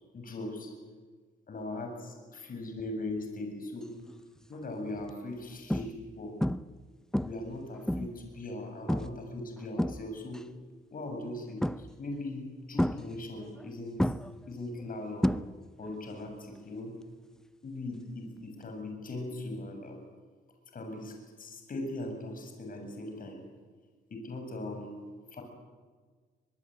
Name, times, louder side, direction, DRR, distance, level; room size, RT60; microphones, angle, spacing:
voice 1, 0.1-0.7 1.5-3.9 4.5-6.4 7.2-10.4 10.9-14.1 14.5-15.3 15.8-16.9 17.6-20.0 20.7-23.4 24.1-25.0 25.3-25.4, left 2 dB, 45° left, 4 dB, 7.6 m, -39 dB
sound 1, 4.1-4.4 5.0-5.1 5.7-6.1 6.4-6.8 7.1-8.3 8.9-9.2 9.6-10.4 11.6-12.1 12.8-13.7 14.0-15.9 16.1-16.6 18.6-18.7, equal, 5° left, 0.7 m, -31 dB
23.0 x 22.5 x 9.4 m, 1.5 s
cardioid pair, 90°, 20 cm